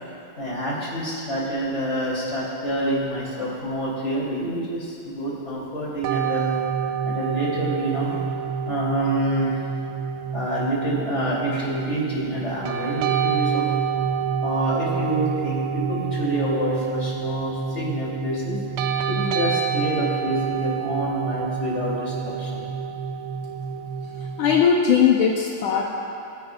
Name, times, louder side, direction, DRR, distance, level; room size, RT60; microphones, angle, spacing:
voice 1, 0.4-6.6 7.0-8.2 8.7-9.5 10.3-13.6 14.4-18.6 19.1-22.7, right 1 dB, 30° left, -6 dB, 3.3 m, -27 dB
sound 1, 6.0-24.6, right 7 dB, 80° right, 1.6 m, -27 dB
voice 2, 24.4-25.9, left 7 dB, 80° left, -1 dB, 1.7 m, -19 dB
23.5 x 9.7 x 2.4 m, 2.9 s
omnidirectional pair, 2.3 m